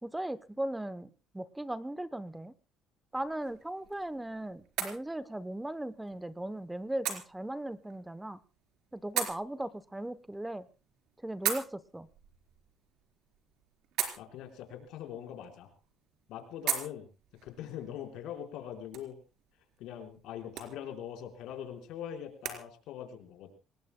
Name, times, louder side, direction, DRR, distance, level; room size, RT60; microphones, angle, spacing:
voice 1, 0.0-2.5 3.1-8.4 8.9-10.7 11.2-12.1, right 1 dB, 5° right, 14 dB, 0.8 m, -38 dB
sound 1, 3.1-22.6, right 9 dB, 75° right, 4.2 m, -42 dB
voice 2, 14.2-15.7 16.3-17.1 17.4-19.2 19.8-23.5, left 9 dB, 80° left, 4 dB, 4.4 m, -42 dB
27.0 x 19.5 x 2.2 m, 0.33 s
cardioid pair, 125°, 0 cm